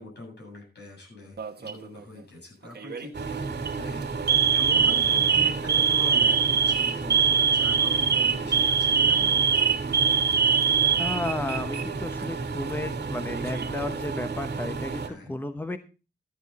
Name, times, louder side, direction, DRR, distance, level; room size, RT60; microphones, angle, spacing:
voice 1, 0.0-3.5 3.8-4.1 4.5-9.7 15.0-15.3, left 1 dB, 80° left, 0 dB, 7.9 m, -42 dB
Alarm, 1.4-1.9 2.8-3.1 3.5-3.7 4.3-11.8 12.1-12.2 13.2-13.9, right 7 dB, 70° right, 1.2 m, -23 dB
sound 1, 3.1-15.1, right 4 dB, 85° right, 1.9 m, -33 dB
voice 2, 11.0-15.8, left 2 dB, 10° left, 9 dB, 0.9 m, -33 dB
14.0 x 10.5 x 4.1 m, 0.32 s
wide cardioid pair, 145°, 17 cm